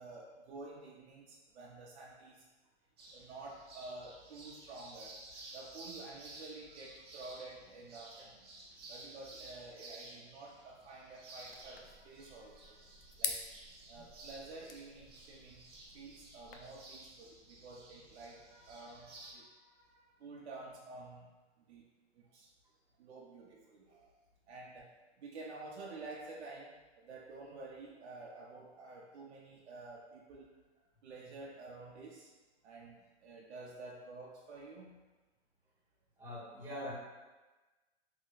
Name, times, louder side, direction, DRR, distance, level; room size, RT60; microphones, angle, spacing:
voice 1, 0.0-2.4 3.1-5.2 5.5-8.5 8.9-13.4 13.9-15.7 15.9-21.3 21.7-21.8 22.1-22.5 23.0-24.1 24.5-24.9 25.2-30.5 31.0-32.3 32.6-35.1, right 3 dB, 70° right, -3 dB, 0.6 m, -50 dB
sound 1, 3.0-19.3, right 2 dB, 25° right, 0.3 m, -54 dB
sound 2, 11.5-16.5, left 6 dB, 55° left, 0.5 m, -46 dB
voice 2, 36.2-36.9, left 1 dB, 5° right, -10 dB, 0.8 m, -43 dB
3.2 x 2.2 x 3.7 m, 1.2 s
hypercardioid pair, 155°, 34 cm